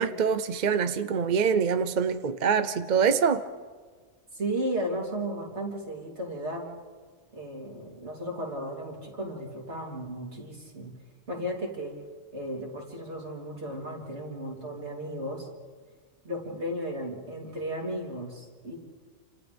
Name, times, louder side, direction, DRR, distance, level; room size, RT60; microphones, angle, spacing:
voice 1, 0.0-3.4, right 6 dB, 45° right, 10 dB, 0.7 m, -25 dB
voice 2, 4.3-6.7 7.3-10.9 11.3-11.9 12.3-15.5 16.2-18.8, right 1 dB, 60° right, -2 dB, 3.8 m, -34 dB
28.5 x 27.5 x 3.5 m, 1.5 s
omnidirectional pair, 1.3 m